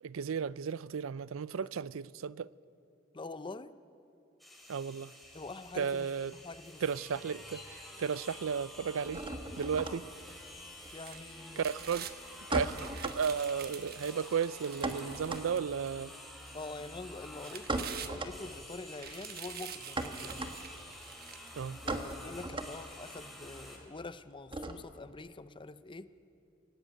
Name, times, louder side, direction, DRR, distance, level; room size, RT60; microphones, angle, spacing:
voice 1, 0.0-2.5 4.7-5.1 5.8-6.3 6.8-9.2 9.6-10.0 11.6-12.1 12.5-16.1 21.6-21.8, right 6 dB, 85° right, 0.4 m, -34 dB
voice 2, 3.1-3.8 5.3-6.8 9.8-10.0 10.9-11.7 16.5-20.4 21.8-26.1, left 3 dB, 25° left, 0.6 m, -45 dB
sound 1, 4.4-23.8, left 1 dB, ahead, 3.7 m, -50 dB
sound 2, 5.2-6.9 7.1-7.8 8.1-25.1, right 2 dB, 25° right, 1.4 m, -41 dB
sound 3, 10.8-12.2 12.6-15.9 16.5-16.6 17.2-18.5 18.9-21.6 22.1-22.2, right 9 dB, 50° right, 1.2 m, -47 dB
24.0 x 17.0 x 9.2 m
head